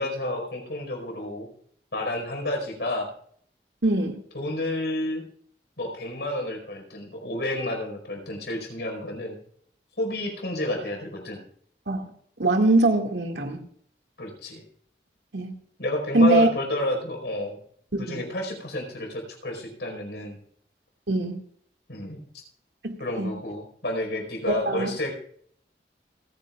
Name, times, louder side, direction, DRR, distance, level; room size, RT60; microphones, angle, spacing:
voice 1, 0.0-1.5 1.9-3.1 4.3-5.3 5.8-9.4 10.0-11.4 14.2-14.6 15.8-17.6 18.0-20.4 21.9-22.2 23.0-25.1, left 1 dB, 80° left, 2 dB, 4.8 m, -30 dB
voice 2, 3.8-4.2 11.9-12.1 12.4-13.6 15.3-15.5 16.1-16.5 18.1-18.2 21.1-21.4 22.8-23.3 24.5-24.9, right 2 dB, 85° right, 3 dB, 2.1 m, -22 dB
29.0 x 9.9 x 2.4 m, 0.62 s
head